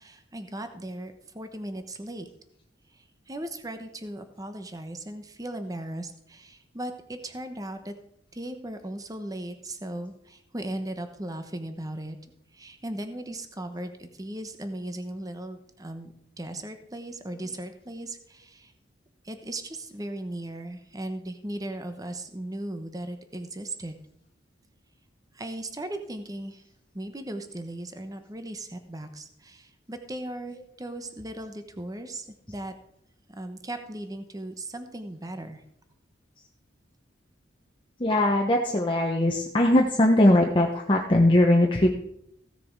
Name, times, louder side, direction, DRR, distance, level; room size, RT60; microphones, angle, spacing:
voice 1, 0.0-2.3 2.9-7.9 8.3-12.2 12.5-18.7 19.2-23.9 25.3-26.6 26.9-32.7 33.3-35.6, right 1 dB, 20° right, 8 dB, 1.0 m, -37 dB
voice 2, 38.0-42.0, left 1 dB, 25° left, 1 dB, 0.9 m, -20 dB
15.5 x 6.9 x 4.7 m, 0.74 s
head